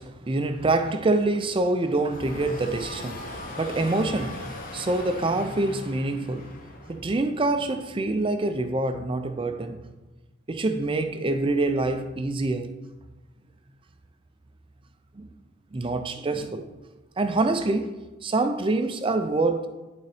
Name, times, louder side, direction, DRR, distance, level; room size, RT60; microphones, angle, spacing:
voice 1, 0.0-6.6 6.9-9.8 10.5-12.8 15.1-15.3 15.7-16.7 17.2-17.9 18.2-19.7, right 2 dB, 25° right, 0.4 m, -26 dB
Some kind of Hollow roar, 2.0-7.2, left 2 dB, 40° left, 0.8 m, -39 dB
11.5 x 3.9 x 3.4 m
head